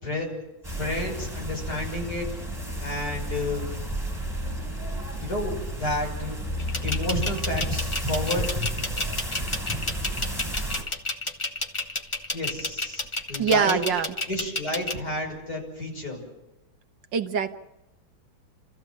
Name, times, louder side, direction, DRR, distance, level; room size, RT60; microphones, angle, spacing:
sound 1, 0.6-10.8, equal, ahead, 4.0 m, -31 dB
voice 1, 0.7-2.3 2.8-3.7 5.2-6.4 6.8-8.4 12.3-13.0 13.3-13.8 14.3-16.2, left 1 dB, 50° left, 0 dB, 6.6 m, -31 dB
sound 2, 6.6-14.9, left 2 dB, 25° left, 0.8 m, -30 dB
voice 2, 13.4-14.1 17.1-17.5, right 6 dB, 70° right, 8 dB, 1.6 m, -23 dB
28.0 x 14.5 x 7.3 m, 0.96 s
omnidirectional pair, 2.1 m